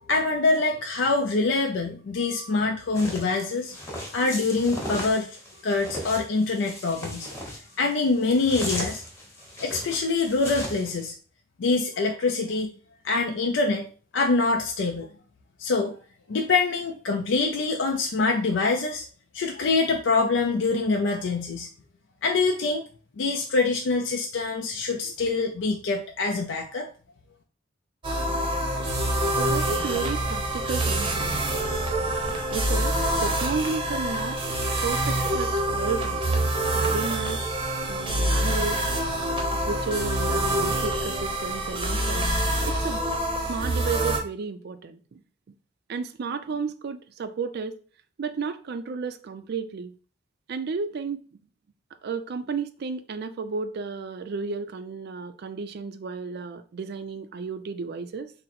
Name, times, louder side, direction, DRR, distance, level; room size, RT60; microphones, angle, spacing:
voice 1, 0.1-3.8 4.1-7.3 7.8-9.0 9.6-11.1 11.6-12.7 13.0-13.9 14.1-15.1 15.6-16.0 16.3-19.1 19.3-21.7 22.2-22.8 23.2-26.9, left 3 dB, 70° left, 0.4 m, -25 dB
sound 1, 2.9-11.0, left 1 dB, 15° left, 1.1 m, -36 dB
sound 2, 28.0-44.2, right 1 dB, 25° right, 0.7 m, -26 dB
voice 2, 29.2-31.4 32.5-34.4 34.8-36.4 36.7-37.4 37.8-38.8 39.5-42.3 42.7-43.1 43.5-45.2 45.9-47.8 48.2-49.9 50.5-51.2 52.0-58.3, right 5 dB, 55° right, 0.4 m, -33 dB
3.8 x 2.0 x 4.2 m
head